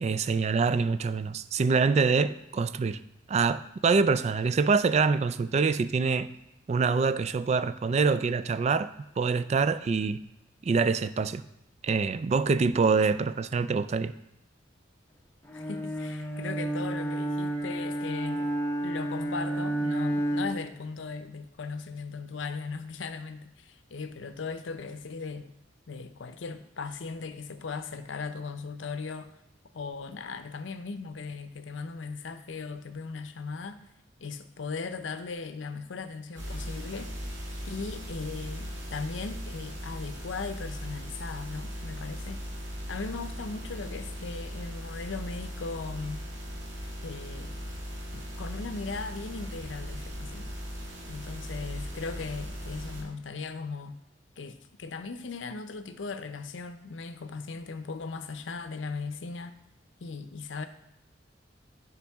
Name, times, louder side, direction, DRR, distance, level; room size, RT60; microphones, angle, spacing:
voice 1, 0.0-3.0 3.3-6.3 6.7-8.9 9.2-10.2 10.6-11.4 11.8-14.1, right 4 dB, 35° right, 0.3 m, -25 dB
voice 2, 15.5-18.5 18.8-25.5 25.9-29.3 29.7-33.9 34.2-37.1 37.6-42.4 42.9-46.2 47.0-47.6 48.1-50.5 51.1-54.0 54.4-59.5 60.0-60.7, left 4 dB, 80° left, 0.6 m, -38 dB
Bowed string instrument, 15.5-20.8, right 1 dB, 10° left, 0.8 m, -31 dB
sound 1, 36.3-53.0, equal, 70° right, 2.1 m, -38 dB
10.0 x 5.2 x 3.5 m
head